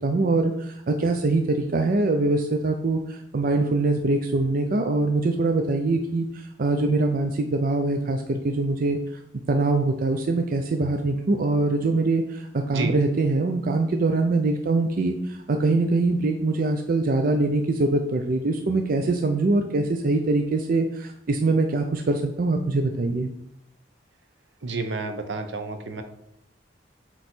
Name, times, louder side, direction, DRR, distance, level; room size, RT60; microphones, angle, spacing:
voice 1, 0.0-9.0 9.5-23.3, right 2 dB, 50° right, 4 dB, 0.5 m, -23 dB
voice 2, 24.6-26.0, right 3 dB, 80° right, 7 dB, 0.8 m, -30 dB
7.8 x 3.1 x 4.3 m, 0.77 s
head